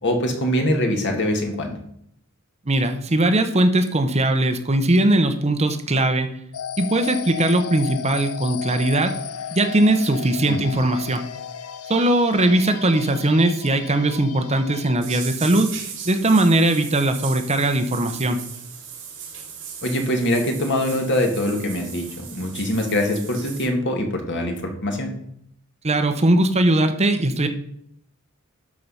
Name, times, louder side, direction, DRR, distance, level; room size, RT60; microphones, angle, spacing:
voice 1, 0.0-1.8 10.5-10.6 19.8-25.1, left 1 dB, 55° left, 3 dB, 1.9 m, -23 dB
voice 2, 2.7-6.3 6.8-9.1 9.5-11.2 11.9-15.7 16.0-18.4 25.8-27.5, right 1 dB, 30° right, 7 dB, 0.9 m, -19 dB
sound 1, 6.5-15.0, left 8 dB, 80° left, 0.6 m, -35 dB
sound 2, 15.0-23.7, right 7 dB, 60° right, 3.3 m, -37 dB
12.0 x 4.7 x 5.6 m, 0.72 s
head